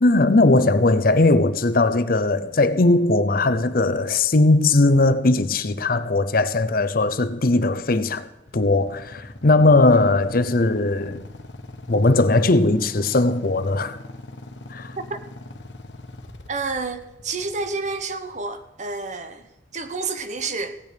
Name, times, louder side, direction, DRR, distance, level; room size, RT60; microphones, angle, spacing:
voice 1, 0.0-8.3 8.5-11.2 11.9-14.0 14.7-14.9, left 2 dB, 50° left, 0.7 m, -19 dB
Motorcycle / Idling, 8.5-18.4, left 2 dB, 80° left, 1.2 m, -41 dB
voice 2, 16.5-20.8, right 4 dB, 40° right, 1.0 m, -29 dB
16.0 x 9.4 x 5.1 m
head